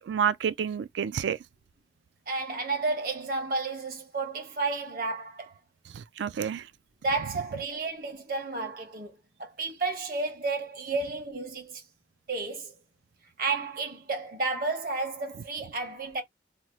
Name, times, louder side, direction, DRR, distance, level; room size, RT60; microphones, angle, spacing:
voice 1, 0.0-1.4 5.9-6.7, right 8 dB, 80° right, 0.3 m, -29 dB
voice 2, 2.3-5.6 7.0-11.8 12.3-12.7 13.2-16.2, right 3 dB, 55° right, 1.1 m, -32 dB
2.8 x 2.3 x 3.0 m
head